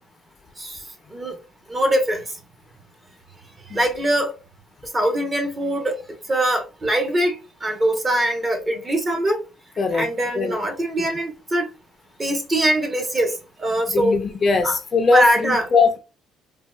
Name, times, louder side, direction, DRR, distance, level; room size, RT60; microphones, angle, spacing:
voice 1, 1.7-2.2 3.7-4.4 4.9-6.0 6.3-7.3 7.6-9.4 9.9-11.7 12.2-13.3 13.6-14.2 14.6-14.8 15.1-15.6, right 1 dB, 25° right, 1.0 m, -22 dB
voice 2, 9.8-10.1 10.4-10.6 11.0-11.1 13.9-16.0, left 4 dB, 35° left, 0.5 m, -20 dB
3.8 x 2.3 x 2.3 m
cardioid pair, 120°, 0 cm